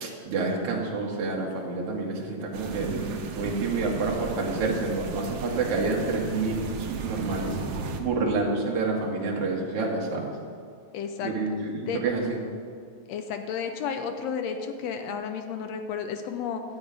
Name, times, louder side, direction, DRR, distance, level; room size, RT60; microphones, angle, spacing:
voice 1, 0.0-2.9 3.3-7.6 8.0-10.3 11.2-12.4, right 3 dB, 55° right, -2 dB, 2.4 m, -28 dB
sound 1, 2.5-8.0, right 4 dB, 75° right, 2.2 m, -35 dB
voice 2, 10.9-11.3 11.8-12.0 13.1-16.6, left 7 dB, 75° left, 7 dB, 1.7 m, -32 dB
12.0 x 8.0 x 5.3 m, 2.3 s
omnidirectional pair, 3.4 m